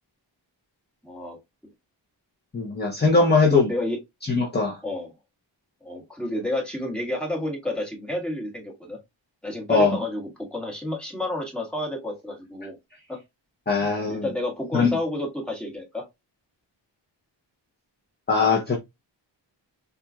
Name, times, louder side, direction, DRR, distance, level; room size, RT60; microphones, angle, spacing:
voice 1, 1.0-1.4 3.1-4.0 4.8-5.1 5.8-9.0 9.4-12.7 13.1-13.2 14.1-16.0, left 1 dB, ahead, 1.6 m, -30 dB
voice 2, 2.5-3.7 4.3-4.8 9.7-9.9 13.7-14.2 14.7-15.0 18.3-18.8, left 4 dB, 20° left, 0.8 m, -20 dB
4.3 x 2.5 x 2.3 m
wide cardioid pair, 65°, 45 cm